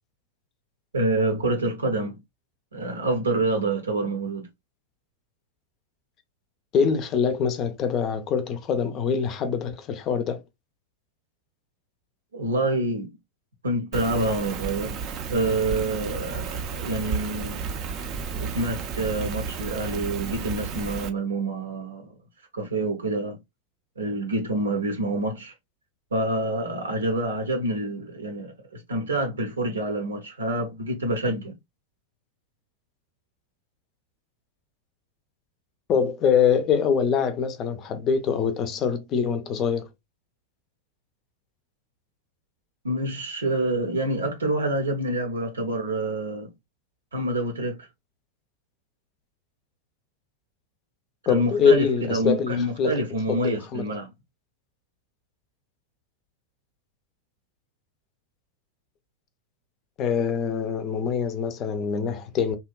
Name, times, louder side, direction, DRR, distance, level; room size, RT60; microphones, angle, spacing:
voice 1, 0.9-2.2 2.7-4.5 12.3-13.1 13.6-15.0 15.3-17.6 18.3-22.1 22.5-23.4 24.0-25.5 26.1-31.5 42.8-46.5 47.1-47.9 51.2-54.1, right 2 dB, 75° right, 0.7 m, -27 dB
voice 2, 6.7-10.4 35.9-39.9 51.3-53.8 60.0-62.6, left 6 dB, 35° left, 0.5 m, -24 dB
Rain, 13.9-21.1, right 5 dB, 35° right, 0.5 m, -32 dB
2.8 x 2.2 x 2.3 m
figure-of-eight pair, 90°, 0 cm